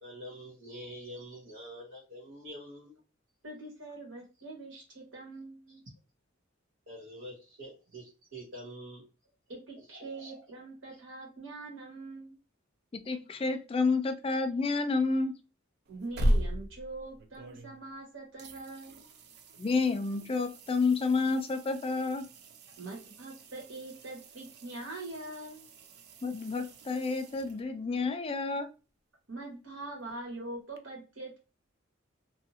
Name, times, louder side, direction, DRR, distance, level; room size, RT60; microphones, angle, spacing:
voice 1, 0.0-2.9 6.9-8.0 8.3-9.0 10.0-10.3, equal, 85° right, -6 dB, 1.1 m, -45 dB
voice 2, 3.4-5.8 9.5-12.4 15.9-19.0 22.8-25.6 29.3-31.4, right 2 dB, 70° right, -2 dB, 1.4 m, -43 dB
voice 3, 13.1-15.3 19.6-22.2 26.2-28.7, left 4 dB, 30° left, 7 dB, 0.4 m, -29 dB
sound 1, 15.8-18.0 18.4-28.0 30.8-30.9, equal, 55° right, 0.4 m, -38 dB
2.7 x 2.5 x 2.7 m, 0.31 s
head